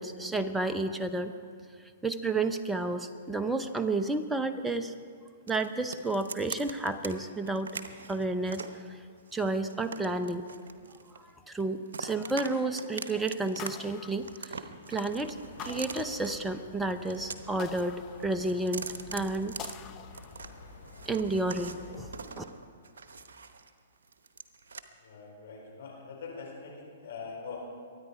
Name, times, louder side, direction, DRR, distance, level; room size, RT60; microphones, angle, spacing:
voice 1, 0.0-1.3 2.0-4.9 5.5-7.7 8.1-8.6 9.3-10.5 11.5-14.6 14.9-15.4 15.6-19.5 21.1-22.1 22.4-22.5, right 2 dB, 5° right, 8 dB, 0.8 m, -31 dB
sound 1, 5.5-7.1 7.5-8.8 9.3-11.3 11.6-12.5 12.8-13.7 14.0-16.3 16.9-17.9 18.2-20.5 20.9-23.7 24.0-24.8, right 5 dB, 70° right, 1.0 m, -42 dB
sound 2, 13.6-14.9 15.6-16.8 17.6-18.8 19.6-20.8, left 10 dB, 30° left, 0.7 m, -47 dB
sound 3, 15.0-22.3, left 3 dB, 85° left, 3.3 m, -50 dB
voice 2, 25.0-27.6, left 5 dB, 65° left, -1 dB, 4.8 m, -43 dB
23.0 x 9.7 x 4.8 m, 2.2 s
figure-of-eight pair, 115°, 0 cm